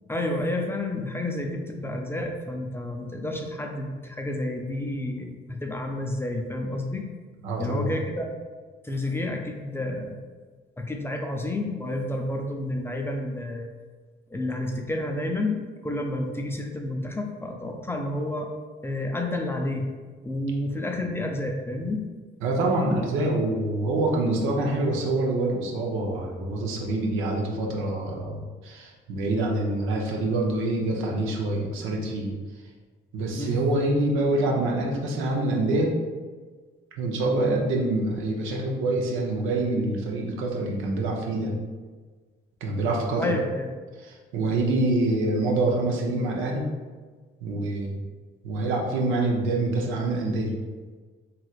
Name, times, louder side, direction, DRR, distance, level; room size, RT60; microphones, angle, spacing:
voice 1, 0.1-7.1 7.6-8.3 8.8-10.2 10.8-13.7 14.3-18.5 18.8-19.9 20.2-22.0 33.4-33.7 43.2-43.7, left 1 dB, 10° left, 2 dB, 0.4 m, -30 dB
voice 2, 7.4-7.9 22.4-32.3 33.1-35.9 37.0-41.6 42.6-43.3 44.0-46.7 47.4-48.0 48.4-50.5, right 2 dB, 90° right, -1 dB, 0.6 m, -26 dB
3.2 x 2.8 x 2.3 m, 1.4 s
cardioid pair, 90°, 20 cm